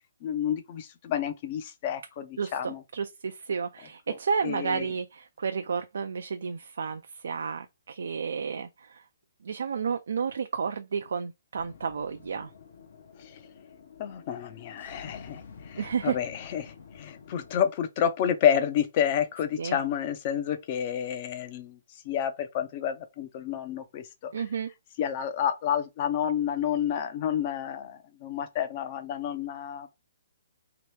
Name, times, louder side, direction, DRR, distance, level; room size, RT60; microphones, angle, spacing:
voice 1, 0.2-2.8 4.1-4.2 4.4-4.9 13.2-13.4 14.0-21.8 22.0-24.3 25.0-29.9, left 9 dB, 35° left, 0.5 m, -29 dB
voice 2, 2.4-9.1 9.4-12.5 15.8-16.2 19.6-19.8 24.3-24.7, right 6 dB, 70° right, 0.4 m, -31 dB
sound 1, 11.6-17.6, left 6 dB, 65° left, 0.8 m, -49 dB
3.0 x 2.9 x 3.4 m
hypercardioid pair, 160°, 0 cm